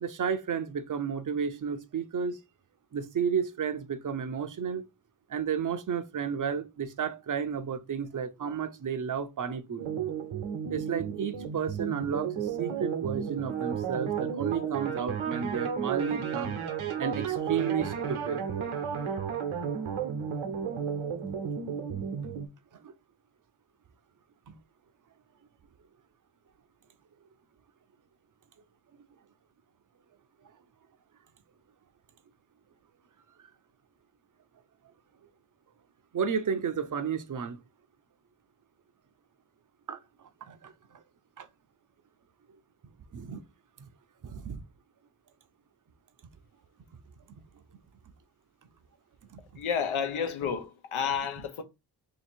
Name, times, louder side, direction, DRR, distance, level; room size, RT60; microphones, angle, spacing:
voice 1, 0.0-2.4 2.9-4.9 5.3-9.9 10.7-16.6 17.0-18.4 22.8-22.9 24.5-24.6 36.1-37.6 39.9-40.0 40.4-41.0 41.4-41.5 43.1-43.4 43.8-43.9 44.2-44.6 49.3-49.4, right 7 dB, 40° right, 0.7 m, -32 dB
sound 1, 9.8-22.5, right 7 dB, 75° right, 1.0 m, -33 dB
voice 2, 49.6-51.6, left 7 dB, 75° left, 0.9 m, -30 dB
2.9 x 2.8 x 4.4 m
cardioid pair, 65°, 49 cm